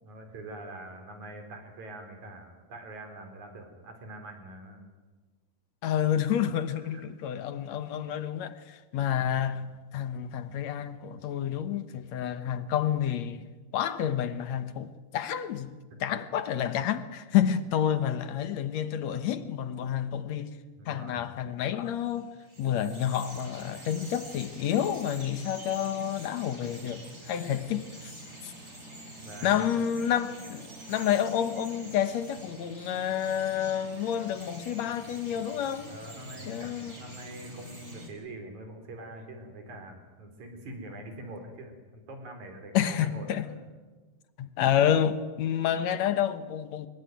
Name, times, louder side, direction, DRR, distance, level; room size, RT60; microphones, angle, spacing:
voice 1, 0.0-4.9 6.8-7.0 20.8-21.3 29.2-29.7 35.9-43.6, right 1 dB, 60° right, 5.4 m, -44 dB
voice 2, 5.8-13.5 13.7-15.7 16.0-20.5 20.9-28.1 28.4-28.5 29.4-35.9 36.5-37.0 42.7-43.5 44.4-46.9, left 9 dB, 65° left, 2.2 m, -29 dB
Bird vocalization bird call bird song, 21.9-38.1, right 1 dB, 20° right, 5.7 m, -46 dB
25.0 x 21.5 x 9.3 m
omnidirectional pair, 3.8 m